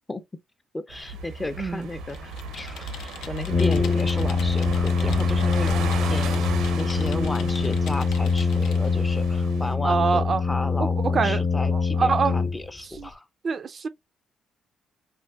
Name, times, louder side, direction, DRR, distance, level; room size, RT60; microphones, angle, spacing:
voice 1, 0.7-6.4 6.7-13.3, left 2 dB, 20° left, 0.5 m, -34 dB
sound 1, 0.9-9.7, right 4 dB, 90° right, 0.6 m, -34 dB
voice 2, 1.6-1.9 9.8-10.4 10.8-11.4 11.7-12.4 13.0-13.1 13.4-13.9, right 5 dB, 45° right, 0.3 m, -25 dB
Computer keyboard, 2.0-8.9, left 7 dB, 85° left, 0.5 m, -43 dB
Brass instrument, 3.5-13.0, left 4 dB, 50° left, 0.8 m, -24 dB
3.3 x 2.4 x 2.3 m
cardioid pair, 90°, 0 cm